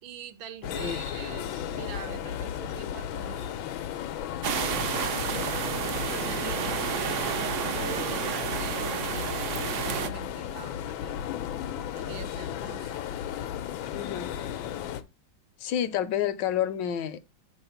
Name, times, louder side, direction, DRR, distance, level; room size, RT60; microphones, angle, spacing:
voice 1, 0.0-3.7 6.0-11.3 11.9-13.0, right 9 dB, 85° right, 1.6 m, -44 dB
sound 1, 0.6-15.0, left 10 dB, 90° left, 1.4 m, -34 dB
sound 2, 4.4-10.1, right 7 dB, 65° right, 0.8 m, -31 dB
voice 2, 13.9-14.3 15.6-17.2, left 10 dB, 75° left, 1.2 m, -29 dB
7.3 x 3.9 x 5.6 m
omnidirectional pair, 2.1 m